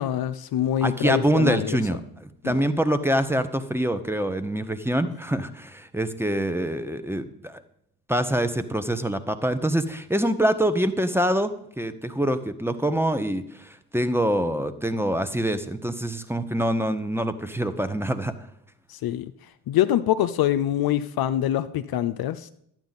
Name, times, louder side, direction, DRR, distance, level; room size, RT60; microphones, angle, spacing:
voice 1, 0.0-1.8 2.4-2.6 18.9-19.3 19.7-22.5, left 11 dB, 55° left, 11 dB, 0.6 m, -24 dB
voice 2, 0.8-7.6 8.1-11.5 11.8-18.3, right 1 dB, 5° right, 10 dB, 1.0 m, -25 dB
11.5 x 8.8 x 4.1 m, 0.72 s
hypercardioid pair, 45°, 45 cm